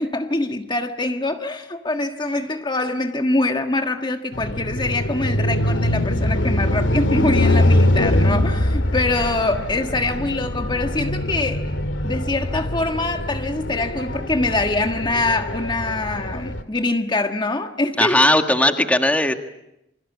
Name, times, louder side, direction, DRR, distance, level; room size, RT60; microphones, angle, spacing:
voice 1, 0.0-11.8 12.0-18.3, left 2 dB, 25° left, 1.5 m, -24 dB
sound 1, 4.3-16.6, left 1 dB, 85° left, 2.4 m, -22 dB
voice 2, 18.0-19.3, left 1 dB, 10° left, 1.7 m, -17 dB
28.5 x 25.5 x 8.3 m
head